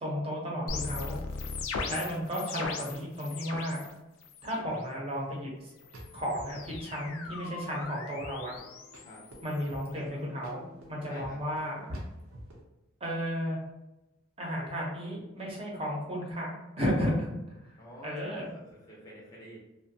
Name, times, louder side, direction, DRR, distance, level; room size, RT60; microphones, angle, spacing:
voice 1, 0.0-1.2 1.9-3.8 4.4-5.7 6.1-8.6 9.4-11.9 13.0-13.6 14.4-17.3 17.6-18.5, equal, 25° right, -3 dB, 0.6 m, -33 dB
sound 1, 0.7-3.9 4.2-4.8 5.8-9.9, left 4 dB, 75° left, 0.3 m, -39 dB
voice 2, 1.7-2.1 9.0-9.2 11.0-11.4 17.8-19.6, equal, 15° left, -5 dB, 0.5 m, -49 dB
sound 2, 5.6-12.6, equal, 85° right, 0.6 m, -51 dB
2.6 x 2.2 x 2.6 m, 0.97 s
head